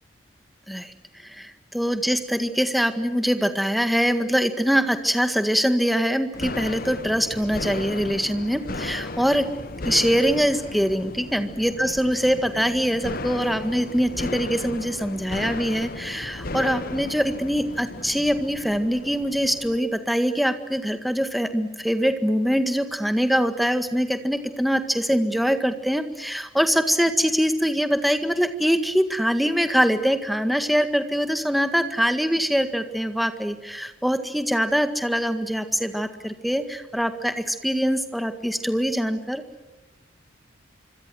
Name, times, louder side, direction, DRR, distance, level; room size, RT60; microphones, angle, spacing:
voice 1, 1.2-9.5 9.8-39.4, equal, ahead, 8 dB, 1.8 m, -23 dB
sound 1, 6.3-19.8, left 2 dB, 50° left, 1.0 m, -35 dB
25.5 x 25.5 x 7.7 m, 1.0 s
head